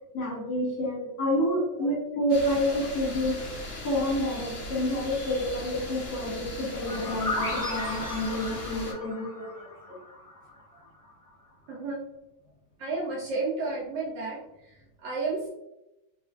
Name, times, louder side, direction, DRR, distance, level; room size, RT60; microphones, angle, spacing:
voice 1, 0.1-3.4 3.8-9.7, left 1 dB, 50° left, -4 dB, 1.3 m, -29 dB
sound 1, 2.3-8.9, left 1 dB, 85° left, 0.5 m, -39 dB
sound 2, 6.9-10.6, left 2 dB, 30° left, 0.6 m, -34 dB
voice 2, 12.8-15.5, right 3 dB, 75° right, -4 dB, 1.0 m, -33 dB
3.1 x 2.4 x 2.3 m, 0.91 s
omnidirectional pair, 2.3 m